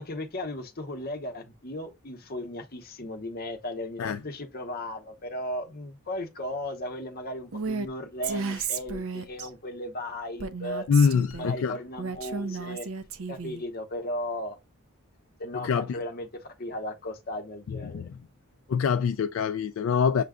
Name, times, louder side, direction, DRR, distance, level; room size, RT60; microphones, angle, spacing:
voice 1, 0.0-10.9 11.4-12.9 13.3-14.6 15.4-18.1, left 1 dB, 45° left, 0.8 m, -36 dB
Female speech woman speaking, 7.5-7.9 8.2-9.5 10.4-11.5 12.0-13.6, right 4 dB, 65° right, 0.5 m, -33 dB
voice 2, 10.9-11.8 15.5-16.0 17.7-18.1 18.7-20.2, left 6 dB, 65° left, 0.3 m, -25 dB
6.6 x 2.2 x 3.6 m
head